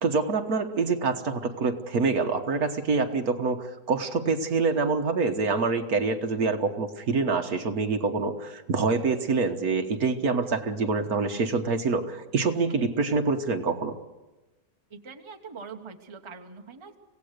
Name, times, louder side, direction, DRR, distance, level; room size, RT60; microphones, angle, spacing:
voice 1, 0.0-13.9, right 4 dB, 60° right, 6 dB, 1.7 m, -26 dB
voice 2, 14.9-17.0, right 5 dB, 20° right, 5 dB, 1.0 m, -43 dB
25.5 x 17.0 x 6.6 m, 1.1 s
omnidirectional pair, 1.8 m